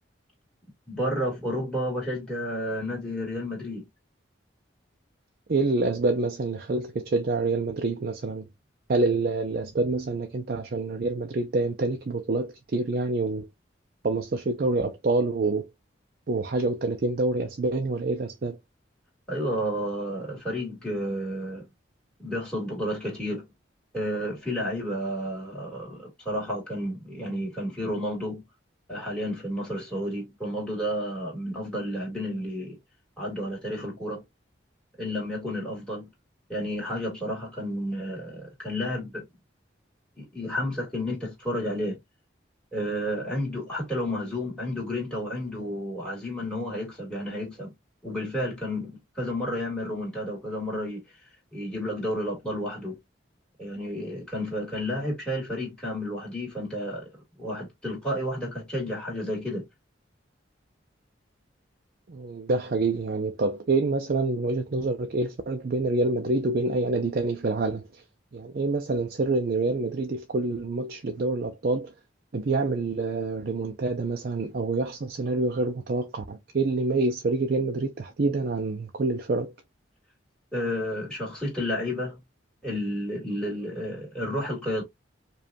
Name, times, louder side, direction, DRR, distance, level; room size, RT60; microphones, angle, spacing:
voice 1, 0.9-3.8 19.3-21.7 22.2-23.5 23.9-28.4 28.9-32.8 33.2-34.2 35.0-36.1 36.5-39.2 40.2-42.0 42.7-47.7 48.0-51.0 51.5-53.0 53.6-57.1 57.4-59.7 80.5-82.2 82.6-84.8, equal, 5° left, 2.1 m, -31 dB
voice 2, 5.5-8.5 8.9-13.5 14.0-15.7 16.3-18.6 62.1-68.0 68.3-71.9 72.3-79.5, right 3 dB, 50° right, 0.5 m, -27 dB
5.1 x 2.3 x 2.6 m
head